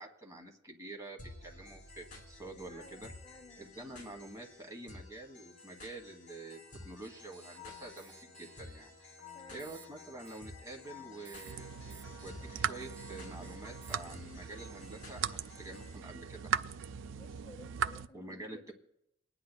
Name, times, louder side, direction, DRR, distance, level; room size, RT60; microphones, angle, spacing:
voice 1, 0.0-3.1 3.6-8.9 9.5-11.7 12.2-16.6 18.1-18.7, right 2 dB, 15° right, 1 dB, 1.5 m, -47 dB
sound 1, 1.2-15.9, left 2 dB, 45° left, 2.6 m, -54 dB
voice 2, 2.6-3.6 9.3-9.7 17.2-18.6, left 2 dB, 25° left, 5 dB, 0.6 m, -56 dB
sound 2, 7.0-14.1, left 2 dB, 65° right, 1.3 m, -54 dB
sound 3, 11.4-18.1, right 7 dB, 80° right, 0.4 m, -39 dB
28.5 x 9.9 x 2.3 m, 0.81 s
head